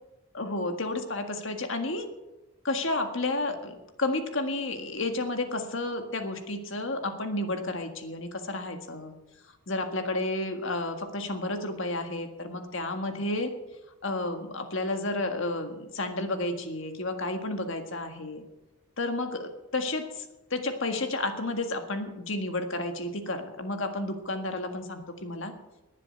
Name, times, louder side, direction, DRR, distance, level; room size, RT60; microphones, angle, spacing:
voice 1, 0.3-2.1 2.6-9.1 9.7-13.5 14.0-18.5 19.0-20.3 20.5-25.5, left 2 dB, 60° left, 5 dB, 1.7 m, -31 dB
20.5 x 7.6 x 6.5 m, 0.99 s
head